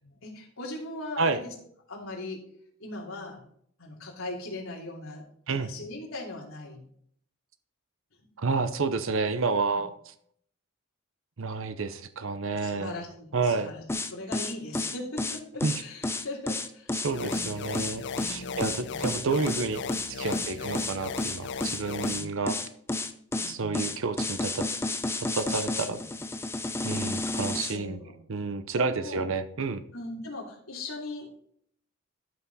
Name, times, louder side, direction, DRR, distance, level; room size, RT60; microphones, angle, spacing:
voice 1, 0.0-1.5 1.9-2.4 2.8-3.4 3.8-6.8 9.7-9.8 12.6-13.8 14.1-19.0 20.2-20.7 21.8-22.3 23.4-23.9 25.8-26.1 27.6-28.1 28.8-29.2 29.9-31.3, left 2 dB, 75° left, -2 dB, 3.1 m, -40 dB
voice 2, 8.4-10.1 11.4-12.9 13.3-13.7 15.6-15.7 16.9-22.6 23.5-24.7 25.3-26.0 26.8-28.0 28.3-29.8, right 4 dB, 65° right, 11 dB, 0.7 m, -30 dB
sound 1, 13.9-27.8, left 2 dB, 10° left, 0.6 m, -31 dB
sound 2, 17.1-22.2, left 5 dB, 55° left, 0.5 m, -38 dB
12.5 x 5.9 x 4.2 m, 0.65 s
head